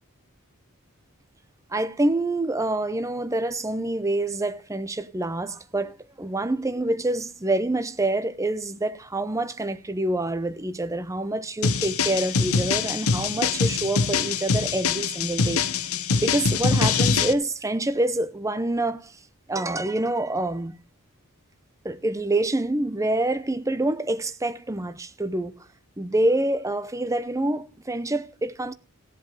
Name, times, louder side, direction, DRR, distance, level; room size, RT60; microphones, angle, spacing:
voice 1, 1.7-15.6 16.2-19.1 19.5-20.8 21.8-25.5 26.0-28.7, right 2 dB, 15° right, 0.7 m, -26 dB
sound 1, 11.6-17.3, left 5 dB, 75° left, 0.9 m, -24 dB
16.5 x 7.9 x 5.6 m
head